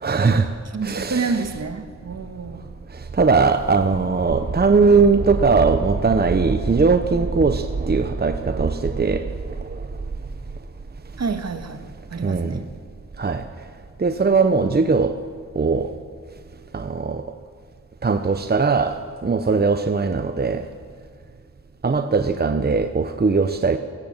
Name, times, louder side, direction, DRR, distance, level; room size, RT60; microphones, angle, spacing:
voice 1, 0.0-0.5 0.8-1.3 2.9-9.9 12.2-12.6 13.2-13.5 14.0-15.1 15.5-15.9 16.7-17.2 18.0-20.6 21.8-23.8, right 4 dB, 35° right, 1.0 m, -20 dB
voice 2, 0.7-2.7 11.2-12.6, right 4 dB, 60° right, 1.9 m, -28 dB
27.5 x 18.0 x 9.1 m
wide cardioid pair, 140°, 29 cm